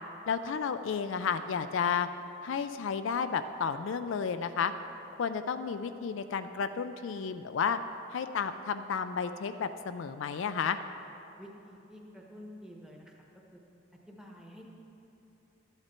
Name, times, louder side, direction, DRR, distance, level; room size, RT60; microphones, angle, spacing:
voice 1, 0.3-2.1 2.4-4.7 5.2-7.8 8.1-10.8, left 6 dB, 70° left, 9 dB, 0.4 m, -32 dB
voice 2, 11.4-13.1 14.1-14.7, equal, 5° right, -1 dB, 1.1 m, -49 dB
12.5 x 8.9 x 4.4 m, 2.9 s
head